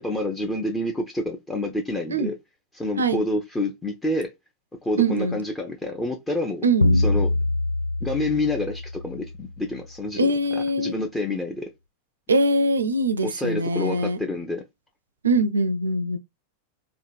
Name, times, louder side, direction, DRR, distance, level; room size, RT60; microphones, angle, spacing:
voice 1, 0.0-2.3 2.8-4.3 4.8-6.6 7.0-7.3 8.0-10.3 10.8-11.7 13.2-14.6, left 1 dB, 10° left, 0.7 m, -28 dB
voice 2, 5.0-5.4 6.6-7.0 10.2-10.9 12.3-14.2 15.2-16.2, right 2 dB, 70° right, 0.5 m, -22 dB
sound 1, 6.8-9.5, left 2 dB, 85° left, 0.3 m, -24 dB
3.8 x 2.2 x 2.3 m
figure-of-eight pair, 90°, 0 cm